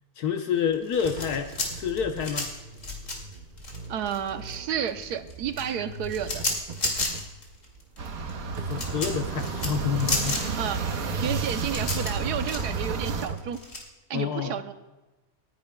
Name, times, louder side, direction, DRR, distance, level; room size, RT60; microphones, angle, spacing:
voice 1, 0.2-2.5 8.7-10.4 14.1-14.6, left 7 dB, 75° left, 6 dB, 1.3 m, -28 dB
sound 1, 0.7-4.6 4.9-13.8, left 2 dB, 50° left, 2.6 m, -32 dB
sound 2, 1.0-13.4, right 3 dB, 50° right, 0.6 m, -37 dB
voice 2, 3.9-6.4 10.6-10.9 11.2-13.6 14.1-14.7, right 9 dB, 85° right, 9 dB, 1.3 m, -31 dB
sound 3, 8.0-13.3, right 5 dB, 65° right, 1.4 m, -32 dB
28.5 x 10.5 x 2.2 m, 1.1 s
omnidirectional pair, 1.7 m